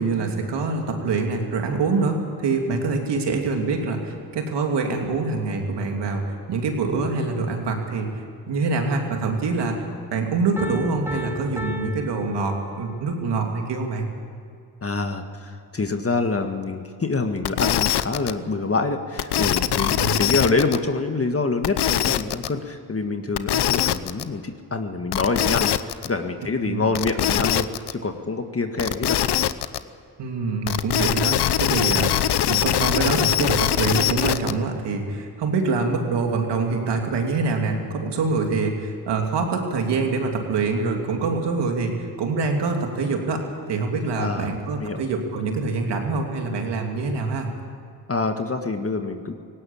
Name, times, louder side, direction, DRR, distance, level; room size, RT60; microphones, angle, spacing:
voice 1, 0.0-8.1 8.5-9.8 10.1-14.1 20.0-20.2 26.7-26.9 30.2-32.1 32.5-47.5, right 4 dB, 90° right, 2 dB, 2.9 m, -25 dB
Piano, 10.6-13.1, left 1 dB, 5° right, 3.3 m, -35 dB
voice 2, 14.8-29.2 44.1-44.5 44.8-45.0 48.1-49.3, left 3 dB, 35° left, 5 dB, 1.7 m, -26 dB
sound 1, 17.4-18.3 19.2-20.8 21.6-22.5 23.4-24.2 25.1-26.1 26.9-27.9 28.8-29.8 30.7-34.5, left 11 dB, 80° left, 0.9 m, -22 dB
18.0 x 17.5 x 8.8 m, 2.5 s
cardioid pair, 60°, 40 cm